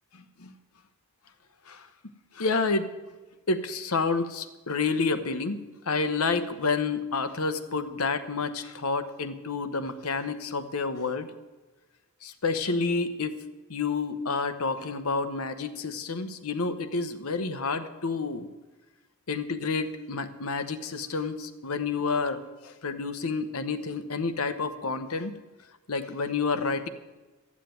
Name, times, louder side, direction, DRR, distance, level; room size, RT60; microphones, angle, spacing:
voice 1, 2.3-2.9 3.5-5.6 5.9-11.3 12.2-13.4 13.7-18.5 19.3-25.3 25.9-26.9, left 4 dB, 80° left, 10 dB, 1.0 m, -29 dB
13.5 x 7.5 x 9.1 m, 1.2 s
head